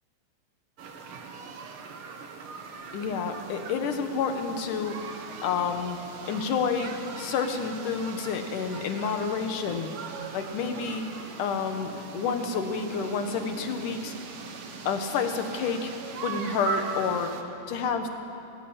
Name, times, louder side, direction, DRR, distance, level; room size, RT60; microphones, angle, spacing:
sound 1, 0.8-17.4, right 5 dB, 55° right, 1.7 m, -40 dB
voice 1, 2.9-5.0 5.4-6.0 6.3-9.9 10.3-11.0 11.4-14.1 14.9-15.9 16.2-17.3 17.7-18.1, left 6 dB, 80° left, 6 dB, 2.9 m, -29 dB
18.5 x 16.5 x 8.8 m, 2.7 s
omnidirectional pair, 3.6 m